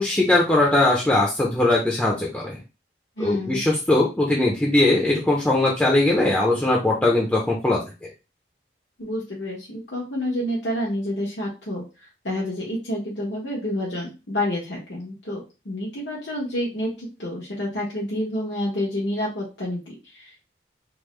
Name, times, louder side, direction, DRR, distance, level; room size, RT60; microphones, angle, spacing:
voice 1, 0.0-2.6 3.2-7.8, left 2 dB, 10° left, -3 dB, 0.5 m, -20 dB
voice 2, 3.2-3.6 9.0-20.4, left 1 dB, 80° left, -5 dB, 1.1 m, -29 dB
3.5 x 2.1 x 3.2 m, 0.29 s
head